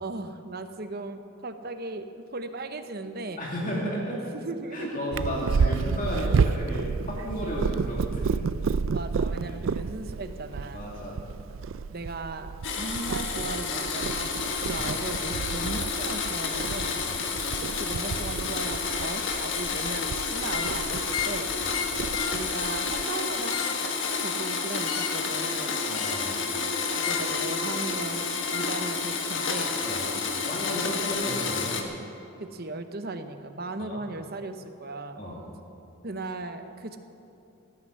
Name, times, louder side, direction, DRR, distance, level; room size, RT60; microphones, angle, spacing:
voice 1, 0.0-4.0 4.4-4.9 8.9-10.9 11.9-17.0 17.8-21.5 22.3-25.8 27.1-29.8 32.4-35.2 36.0-37.0, right 2 dB, 45° right, 8 dB, 0.9 m, -37 dB
voice 2, 3.4-4.2 4.7-8.4 9.5-9.6 10.7-11.3 14.7-14.9 17.0-17.2 21.6-21.7 25.8-26.5 29.8-30.0 30.4-31.8 33.8-34.0 35.2-35.4, equal, 35° left, -3 dB, 2.6 m, -33 dB
Purr, 5.1-23.0, right 5 dB, 65° right, 0.4 m, -31 dB
Domestic sounds home sounds, 12.6-31.8, left 5 dB, 55° left, 1.5 m, -30 dB
sound 1, 20.4-20.8 21.1-21.4 21.7-22.4 23.3-23.8 24.8-25.2 25.9-26.3 27.0-27.3 28.5-28.7, left 8 dB, 75° left, 0.9 m, -34 dB
16.5 x 9.8 x 7.9 m, 2.8 s
head